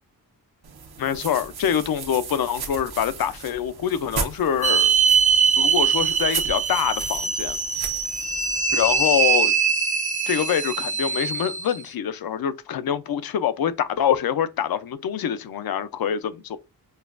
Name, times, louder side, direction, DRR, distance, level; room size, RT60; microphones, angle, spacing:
sound 1, 0.6-9.2, right 5 dB, 80° right, 0.9 m, -36 dB
voice 1, 1.0-4.9 5.6-7.6 8.7-9.5 10.3-16.6, left 9 dB, 70° left, 0.5 m, -25 dB
sound 2, 4.6-11.8, right 6 dB, 20° right, 0.5 m, -22 dB
5.4 x 2.3 x 2.4 m
wide cardioid pair, 120°, 37 cm